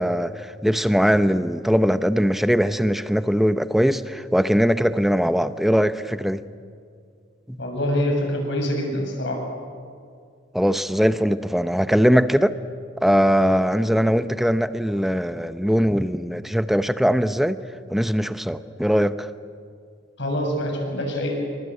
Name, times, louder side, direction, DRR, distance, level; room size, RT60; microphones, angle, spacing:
voice 1, 0.0-6.4 7.5-7.6 10.5-12.6 13.0-17.6 17.9-19.3, equal, ahead, 0.8 m, -21 dB
voice 2, 7.6-9.4 20.2-21.3, equal, 65° left, 7.4 m, -25 dB
28.5 x 24.0 x 8.3 m
head